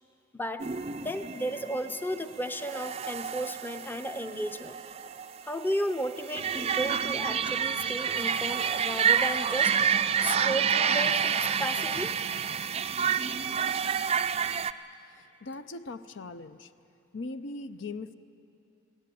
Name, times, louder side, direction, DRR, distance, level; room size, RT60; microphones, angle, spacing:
voice 1, 0.3-0.7 1.0-4.8 5.5-9.8 10.2-12.1, equal, 10° left, 8 dB, 0.6 m, -34 dB
sound 1, 0.6-14.7, right 7 dB, 30° right, 0.4 m, -29 dB
voice 2, 15.0-16.7 17.1-18.1, left 3 dB, 65° left, 11 dB, 0.6 m, -40 dB
21.5 x 18.0 x 8.4 m, 2.7 s
head